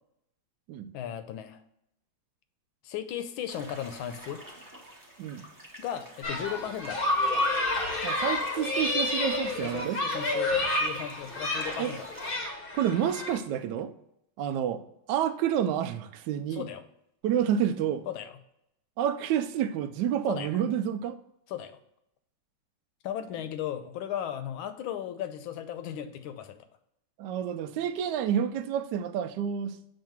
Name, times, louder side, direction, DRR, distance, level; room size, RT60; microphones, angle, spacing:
voice 1, 0.9-1.6 2.8-4.4 5.8-7.4 9.6-12.1 12.4-12.5 16.5-16.8 18.1-18.3 20.3-20.5 21.5-21.7 23.0-26.6, left 10 dB, 80° left, 1.4 m, -36 dB
sound 1, 3.5-12.3, right 1 dB, 15° right, 0.7 m, -48 dB
sound 2, 6.2-13.4, left 2 dB, 45° left, 0.7 m, -29 dB
voice 2, 8.0-10.0 11.8-11.9 12.7-13.9 14.4-14.8 15.1-16.7 17.2-18.0 19.0-21.2 27.2-29.8, right 9 dB, 75° right, 1.0 m, -29 dB
7.4 x 2.6 x 5.8 m
omnidirectional pair, 2.3 m